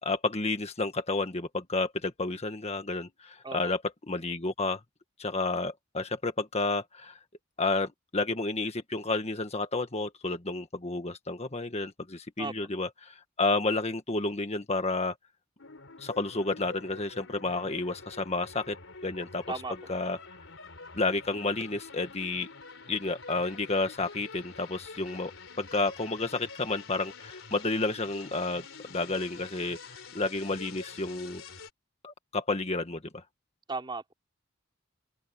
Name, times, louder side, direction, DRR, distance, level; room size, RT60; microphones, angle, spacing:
voice 1, 0.0-3.8 4.1-4.8 5.2-7.2 7.6-15.1 16.0-18.8 19.0-19.4 19.9-20.2 20.9-22.5 22.9-25.3 25.6-29.8 30.1-31.4 32.0-33.2, left 3 dB, 30° left, 1.6 m, -31 dB
sound 1, 15.6-31.7, left 4 dB, 70° left, 4.3 m, -47 dB
voice 2, 33.7-34.1, right 3 dB, 25° right, 3.2 m, -35 dB
open air
head